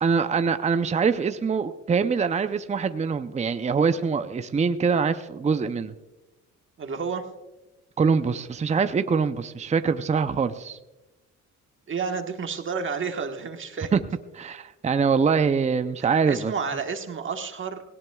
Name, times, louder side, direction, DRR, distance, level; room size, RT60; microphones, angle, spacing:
voice 1, 0.0-5.9 8.0-10.8 13.9-14.0 14.4-16.5, right 5 dB, 25° right, 10 dB, 0.6 m, -24 dB
voice 2, 6.8-7.2 11.9-13.9 16.0-17.8, right 5 dB, 40° right, 5 dB, 1.4 m, -31 dB
18.0 x 17.5 x 2.3 m, 1.0 s
cardioid pair, 90°, 30 cm